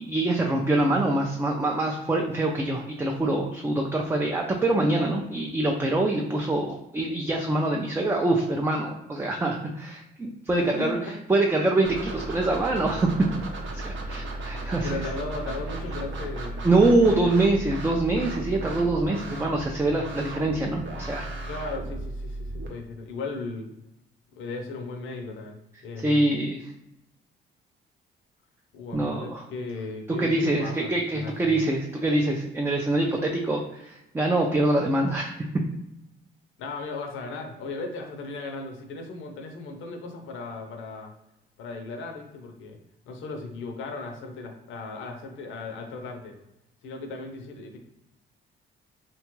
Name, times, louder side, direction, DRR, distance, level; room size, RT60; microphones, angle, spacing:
voice 1, 0.0-11.0 11.3-13.3 13.7-14.9 16.6-21.3 26.0-26.7 28.9-29.4 30.2-35.3, right 2 dB, 10° right, 1 dB, 0.3 m, -24 dB
voice 2, 10.6-11.1 14.6-16.7 17.0-17.5 21.5-23.7 24.4-25.6 25.8-26.2 28.7-31.6 36.6-41.1 41.6-42.8 43.1-46.4 46.8-47.8, left 3 dB, 80° left, 4 dB, 0.6 m, -36 dB
sound 1, 11.8-22.7, right 2 dB, 70° right, 0.7 m, -35 dB
2.8 x 2.3 x 3.0 m, 0.88 s
cardioid pair, 90°, 20 cm